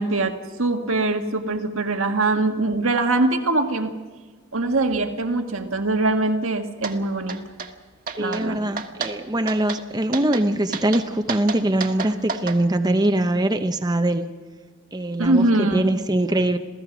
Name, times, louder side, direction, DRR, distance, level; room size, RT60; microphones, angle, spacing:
voice 1, 0.0-3.9 4.5-7.4 8.2-8.6 15.2-15.9, right 2 dB, 75° right, 5 dB, 1.7 m, -22 dB
sound 1, 6.8-7.0 7.3-7.7 8.1-8.4 8.8-9.1 9.5-9.8 10.1-10.4 10.7-12.6, right 5 dB, 45° right, 1.4 m, -30 dB
voice 2, 8.2-14.3 14.9-16.6, right 1 dB, 20° right, 7 dB, 0.8 m, -22 dB
27.5 x 16.0 x 6.1 m, 1.4 s
head